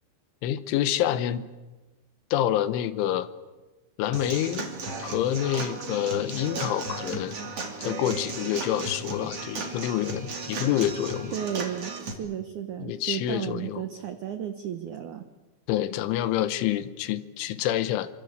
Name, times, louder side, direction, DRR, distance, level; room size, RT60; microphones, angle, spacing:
voice 1, 0.4-1.5 2.3-3.3 4.0-4.7 5.0-7.4 7.8-11.3 12.8-13.9 15.7-18.1, left 12 dB, 90° left, 13 dB, 3.6 m, -27 dB
Human voice / Acoustic guitar / Drum, 4.1-12.1, right 3 dB, 35° right, 3.3 m, -35 dB
voice 2, 11.3-15.2, right 9 dB, 85° right, 8 dB, 1.7 m, -33 dB
27.5 x 25.5 x 8.1 m, 1.2 s
omnidirectional pair, 5.4 m